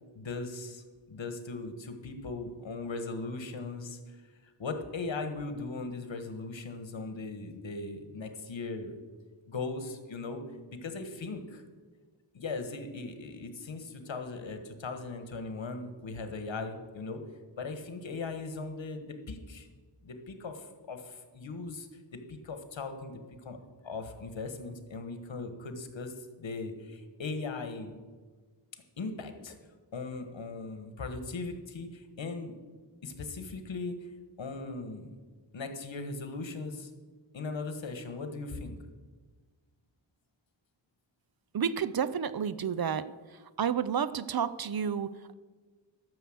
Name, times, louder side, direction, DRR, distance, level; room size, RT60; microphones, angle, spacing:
voice 1, 0.1-4.1 4.6-8.9 9.5-10.4 10.7-11.6 12.3-17.2 17.6-19.7 20.0-23.6 23.8-26.1 26.4-28.0 29.0-29.6 29.9-32.5 33.0-33.9 34.4-35.1 35.5-36.9 37.3-38.8, left 3 dB, 75° left, 7 dB, 1.5 m, -39 dB
voice 2, 41.5-43.1 43.6-45.3, right 7 dB, 55° right, 16 dB, 0.6 m, -30 dB
12.5 x 6.7 x 7.8 m, 1.4 s
wide cardioid pair, 90°, 45 cm